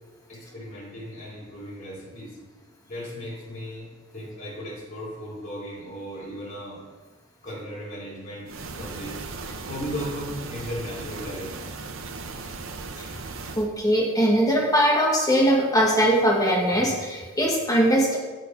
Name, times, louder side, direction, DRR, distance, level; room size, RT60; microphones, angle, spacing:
voice 1, 0.3-2.4 2.9-6.8 7.4-9.2 9.7-11.6, equal, 40° left, -5 dB, 3.0 m, -36 dB
sound 1, 8.5-13.7, right 3 dB, 70° right, 0.8 m, -37 dB
voice 2, 13.6-18.2, equal, 20° left, -2 dB, 1.5 m, -21 dB
13.0 x 4.5 x 4.6 m, 1.3 s
head